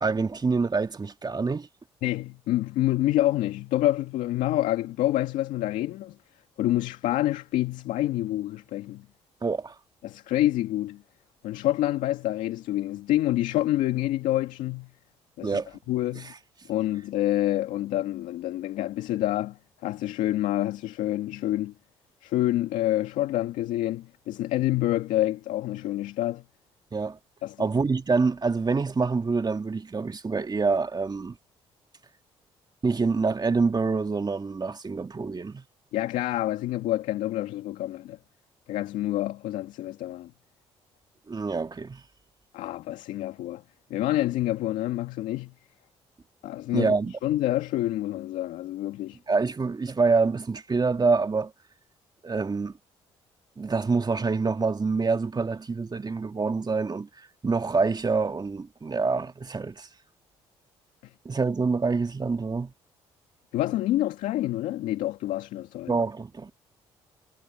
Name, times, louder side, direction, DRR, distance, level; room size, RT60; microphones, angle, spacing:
voice 1, 0.0-1.7 9.4-9.7 15.4-15.7 16.1-16.2 26.9-27.2 27.6-31.4 32.8-35.6 41.3-42.0 46.7-47.2 49.3-51.5 52.2-52.7 53.6-57.1 57.4-59.9 61.2-62.7 65.9-66.5, right 4 dB, 30° right, 2.2 m, -26 dB
voice 2, 2.0-6.1 6.6-9.0 10.0-11.0 11.4-14.9 15.4-15.6 15.9-16.3 16.7-21.7 22.2-26.4 27.4-27.6 35.9-38.2 38.7-40.3 42.5-43.6 43.9-45.5 46.4-46.9 47.2-49.2 63.5-66.0, left 14 dB, 75° left, 2.1 m, -27 dB
hypercardioid pair, 50°, 13 cm